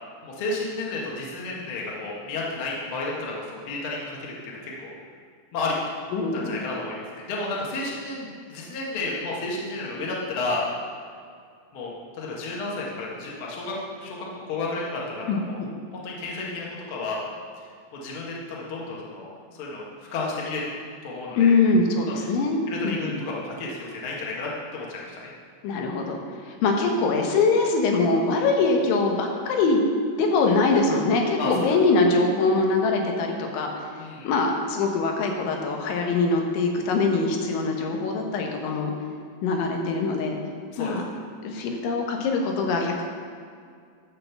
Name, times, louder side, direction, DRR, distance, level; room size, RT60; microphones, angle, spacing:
voice 1, 0.2-4.9 5.5-5.8 6.3-10.6 11.7-14.2 14.5-15.6 15.9-17.2 17.9-19.8 20.1-20.7 21.0-21.5 22.1-22.4 22.6-25.3 31.3-31.7 34.0-34.3 40.7-40.9, left 3 dB, 65° left, -4 dB, 1.3 m, -32 dB
voice 2, 6.1-6.6 15.3-15.7 21.4-22.6 22.8-23.2 25.6-26.2 26.5-29.8 30.2-33.7 34.3-38.9 39.4-40.4 40.8-41.0 41.4-43.0, left 3 dB, 90° left, 2 dB, 3.5 m, -23 dB
13.0 x 4.3 x 6.9 m, 2.2 s
omnidirectional pair, 5.2 m